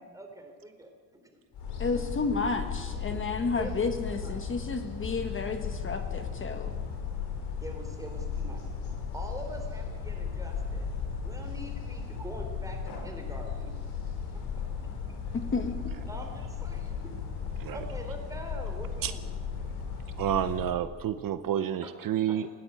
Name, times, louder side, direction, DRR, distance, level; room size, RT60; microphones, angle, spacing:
voice 1, 0.1-0.9 3.1-3.2 3.6-4.4 7.6-8.6 9.1-10.8 11.2-13.7 16.1-17.1 17.7-19.2 21.8-21.9 22.3-22.4, right 1 dB, 10° right, 4 dB, 3.6 m, -43 dB
sound 1, 1.5-20.7, left 6 dB, 85° left, 5.1 m, -36 dB
voice 2, 1.8-6.7 15.3-15.7, left 4 dB, 30° left, 6 dB, 1.5 m, -31 dB
voice 3, 20.2-22.5, right 10 dB, 60° right, 12 dB, 0.9 m, -29 dB
19.0 x 16.5 x 8.8 m, 1.5 s
cardioid pair, 150°, 38 cm